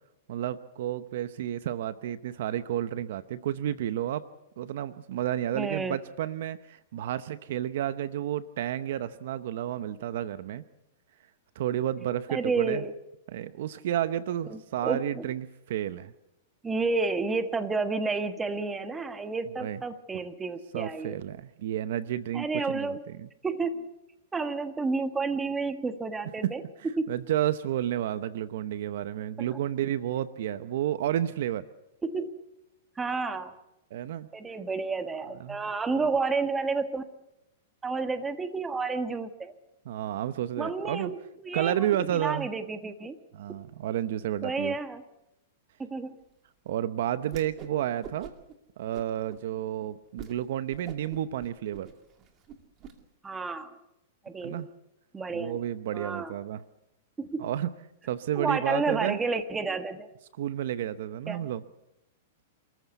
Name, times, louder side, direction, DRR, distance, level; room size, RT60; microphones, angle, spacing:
voice 1, 0.3-4.2 4.6-10.6 11.5-12.8 13.3-16.1 19.6-19.8 20.7-23.3 26.4-26.6 27.1-31.7 33.9-34.3 35.4-36.1 39.8-41.1 41.5-42.5 43.3-44.8 46.7-48.3 48.8-51.9 54.4-54.7 55.3-56.6 57.4-57.7 58.0-59.2 60.4-61.6, right 11 dB, 65° right, 14 dB, 0.8 m, -31 dB
voice 2, 5.5-6.0 12.3-12.9 14.5-15.3 16.6-21.2 22.3-23.0 23.4-23.9 24.3-26.6 27.0-27.1 29.4-29.6 32.0-32.3 33.0-33.5 34.3-37.0 37.8-39.5 40.6-43.2 44.4-45.0 45.8-46.2 53.2-53.8 54.2-54.7 55.1-55.6 55.9-56.3 57.2-57.4 58.3-60.1 61.3-61.5, right 4 dB, 10° right, 9 dB, 1.4 m, -31 dB
Whoosh swoosh swish, 47.3-47.8 48.0-48.5 48.9-49.4 49.8-49.9 50.2-50.4 50.7-52.9, right 7 dB, 30° right, 2.3 m, -45 dB
28.0 x 14.5 x 8.1 m, 0.89 s
hypercardioid pair, 140°, 0 cm